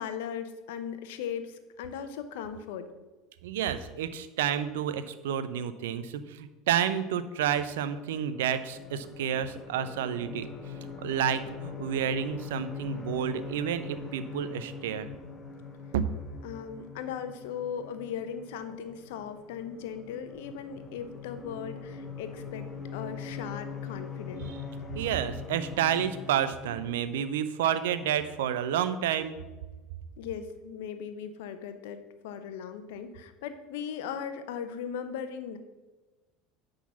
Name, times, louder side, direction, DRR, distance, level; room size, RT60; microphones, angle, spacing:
voice 1, 0.0-2.9 16.4-24.5 30.2-35.6, left 7 dB, 70° left, 9 dB, 0.9 m, -38 dB
voice 2, 3.4-10.5 10.8-15.1 15.9-16.0 24.9-29.4, right 9 dB, 70° right, 13 dB, 0.6 m, -30 dB
sound 1, 7.7-26.9, left 5 dB, 25° left, 1.4 m, -42 dB
10.0 x 3.9 x 7.1 m, 1.2 s
hypercardioid pair, 70°, 0 cm